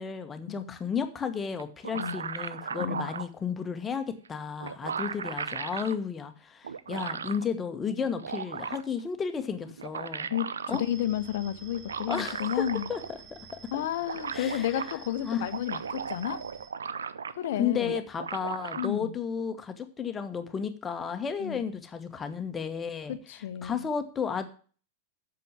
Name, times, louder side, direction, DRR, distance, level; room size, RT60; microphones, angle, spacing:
voice 1, 0.0-10.3 10.7-10.8 12.1-12.6 12.9-13.8 14.3-14.7 15.2-15.5 17.6-23.1 23.6-24.5, left 6 dB, 20° left, 1.3 m, -33 dB
sound 1, 1.6-3.3 4.3-4.4 4.6-6.0 6.6-7.5 8.0-9.0 9.7-10.9 11.7-13.2 13.5-13.6 13.8-14.9 15.4-17.5 17.9-18.9, right 6 dB, 70° right, 0.5 m, -36 dB
voice 2, 10.3-12.9 13.7-16.4 17.4-17.9 18.8-19.2 21.4-21.7 23.1-23.9, left 11 dB, 55° left, 0.8 m, -32 dB
sound 2, 10.7-16.7, right 5 dB, 30° right, 2.0 m, -50 dB
8.4 x 7.0 x 8.1 m
figure-of-eight pair, 90°, 0 cm